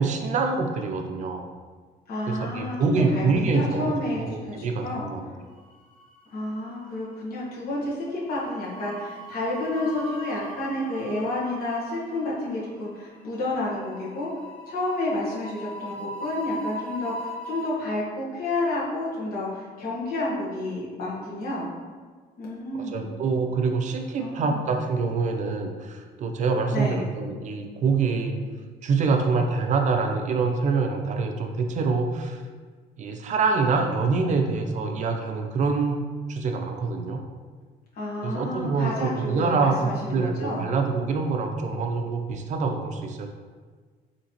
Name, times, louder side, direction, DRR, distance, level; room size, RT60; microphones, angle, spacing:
voice 1, 0.0-1.5 2.3-5.2 22.7-28.4 28.8-32.4 33.0-37.2 38.2-43.3, right 4 dB, 45° right, 4 dB, 0.5 m, -25 dB
voice 2, 2.1-5.1 6.3-14.3 14.7-21.7 22.4-23.1 24.2-24.6 26.7-27.1 37.9-40.7, left 2 dB, 60° left, -6 dB, 1.1 m, -30 dB
sound 1, 5.6-6.4 6.7-6.9 8.1-17.7, equal, 5° left, 0.9 m, -39 dB
3.9 x 2.8 x 2.9 m, 1.5 s
cardioid pair, 110°, 17 cm